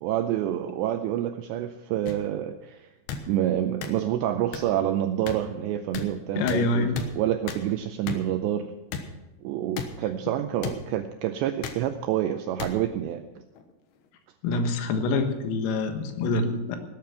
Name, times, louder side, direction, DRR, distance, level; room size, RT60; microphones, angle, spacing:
voice 1, 0.0-2.9 3.3-6.9 7.2-8.7 9.4-13.3, right 11 dB, 90° right, 8 dB, 2.5 m, -28 dB
sound 1, 2.1-2.2 3.1-3.2 3.8-3.9 4.5-4.6 5.3-5.4 5.9-6.1 6.5-6.6 6.9-7.1 7.5-7.6 8.1-8.2 8.9-9.0 9.8-9.9 10.6-10.8 11.6-11.8 12.6-12.7 13.6-13.7, left 7 dB, 70° left, 3.2 m, -33 dB
voice 2, 6.4-7.0 14.4-16.8, left 3 dB, 90° left, 6 dB, 4.1 m, -26 dB
18.5 x 9.3 x 5.9 m, 1.0 s
omnidirectional pair, 5.7 m